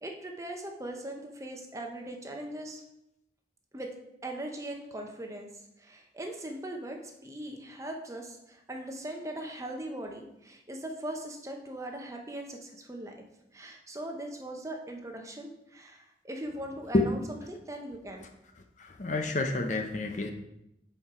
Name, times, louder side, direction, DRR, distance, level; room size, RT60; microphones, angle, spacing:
voice 1, 0.0-2.8 3.7-3.9 4.2-5.5 5.8-13.1 13.5-18.3, right 1 dB, 15° right, 2 dB, 0.8 m, -40 dB
voice 2, 18.8-20.3, left 2 dB, 40° left, 5 dB, 0.7 m, -28 dB
7.0 x 4.6 x 4.8 m, 0.85 s
head